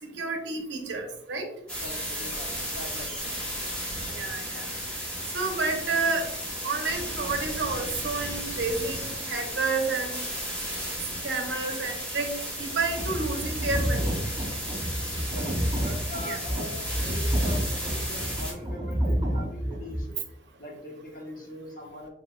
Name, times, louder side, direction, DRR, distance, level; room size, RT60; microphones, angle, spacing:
voice 1, 0.0-1.5 4.1-4.7 5.3-6.3 6.6-10.2 11.2-12.3 12.6-14.2 16.3-16.4, right 3 dB, 75° right, 4 dB, 0.8 m, -30 dB
voice 2, 1.7-3.7 4.5-4.8 15.2-20.1 20.6-22.1, left 1 dB, 50° left, 0 dB, 1.0 m, -42 dB
sound 1, 1.7-18.5, equal, 5° left, 1.2 m, -34 dB
sound 2, 12.8-20.0, equal, 25° right, 0.7 m, -29 dB
4.5 x 3.5 x 2.2 m, 0.81 s
head